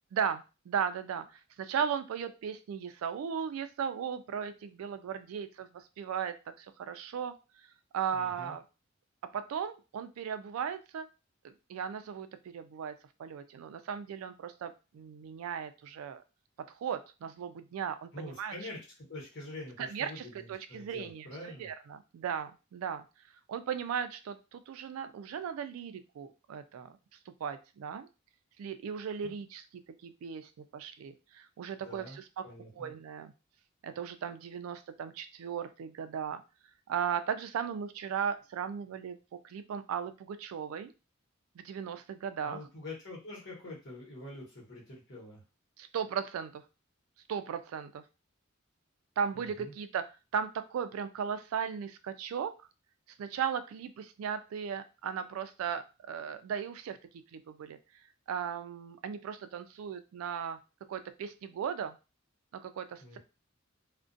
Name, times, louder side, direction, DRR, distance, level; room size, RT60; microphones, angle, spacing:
voice 1, 0.1-7.3 7.9-8.6 9.3-11.1 11.4-12.9 13.2-16.2 16.8-18.5 19.8-23.0 23.5-26.9 27.4-28.1 28.6-32.5 32.7-33.3 33.8-36.4 36.9-39.2 39.4-40.9 41.6-42.6 45.8-46.6 47.3-48.0 49.2-50.1 50.3-52.7 53.2-57.0 57.3-57.8 58.3-60.6 60.9-62.0 62.5-63.2, right 7 dB, 90° right, 12 dB, 0.3 m, -37 dB
voice 2, 8.1-8.5 18.1-18.8 19.1-21.7 29.2-29.3 31.8-32.9 42.4-45.4 49.3-49.7 63.0-63.2, left 2 dB, 60° left, -3 dB, 1.1 m, -45 dB
2.4 x 2.1 x 2.5 m, 0.30 s
head